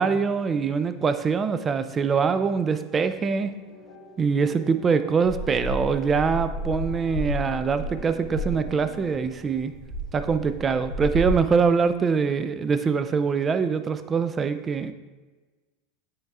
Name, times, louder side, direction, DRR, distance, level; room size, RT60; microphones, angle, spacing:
voice 1, 0.0-3.5 4.2-9.7 10.1-14.9, right 5 dB, 25° right, 11 dB, 0.4 m, -24 dB
sound 1, 3.3-10.0, equal, 65° left, 2.0 m, -46 dB
sound 2, 5.2-11.3, equal, 45° right, 1.5 m, -32 dB
8.9 x 4.5 x 2.4 m, 1.3 s
hypercardioid pair, 110°, 0 cm